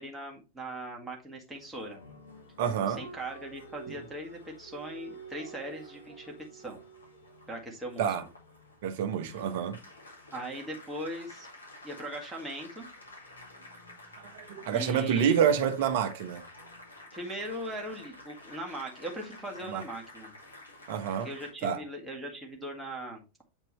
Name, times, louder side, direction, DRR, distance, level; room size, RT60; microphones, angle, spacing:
voice 1, 0.0-2.0 2.9-6.8 7.5-8.1 10.3-11.5 11.8-12.9 14.7-15.4 17.1-20.4 21.2-23.2, right 1 dB, 10° right, 1.9 m, -39 dB
Applause, 1.5-21.5, equal, 75° left, 2.2 m, -50 dB
voice 2, 2.6-3.0 8.0-8.2 8.8-9.8 14.2-16.4 19.7-19.8 20.9-21.3 21.6-21.8, right 8 dB, 50° right, 1.0 m, -28 dB
8.0 x 4.4 x 3.1 m
figure-of-eight pair, 90°, 0 cm